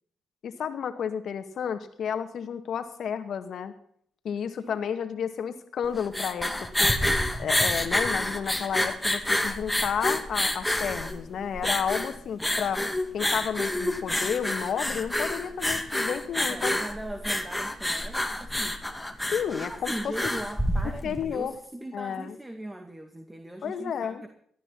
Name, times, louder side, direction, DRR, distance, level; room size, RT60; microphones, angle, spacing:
voice 1, 0.4-3.7 4.2-7.0 7.4-12.8 13.1-16.8 19.3-20.1 20.8-21.5 21.9-22.4 23.6-24.2, left 7 dB, 65° left, 8 dB, 2.1 m, -31 dB
sound 1, 5.8-21.3, left 1 dB, 5° left, 2.2 m, -28 dB
voice 2, 16.5-18.8 19.6-24.3, right 1 dB, 15° right, 6 dB, 2.2 m, -39 dB
19.0 x 13.0 x 4.2 m, 0.63 s
supercardioid pair, 60°, 0 cm